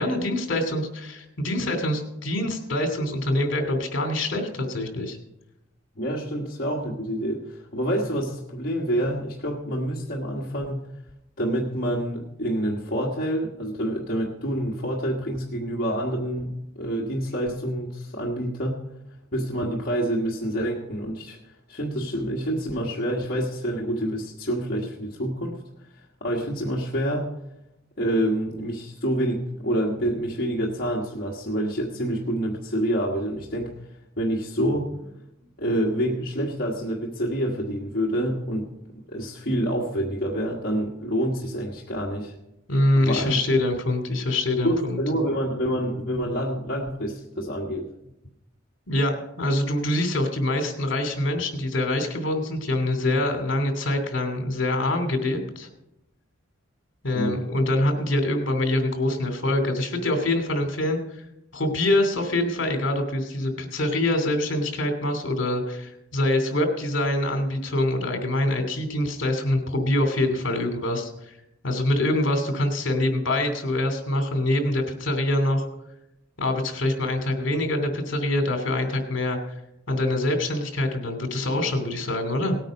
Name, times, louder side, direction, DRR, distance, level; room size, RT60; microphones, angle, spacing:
voice 1, 0.0-5.2 42.7-45.0 48.9-55.7 57.0-61.3 61.5-71.4 71.6-75.6 76.4-79.5 79.9-82.6, left 1 dB, 60° left, 5 dB, 2.7 m, -25 dB
voice 2, 6.0-10.9 11.4-18.8 19.3-21.4 21.7-25.6 26.2-27.3 28.0-33.7 34.2-35.0 35.6-38.7 39.1-42.3 43.0-43.4 44.6-47.9 57.1-57.5, equal, 45° left, -3 dB, 1.5 m, -27 dB
18.0 x 9.1 x 5.3 m, 0.87 s
head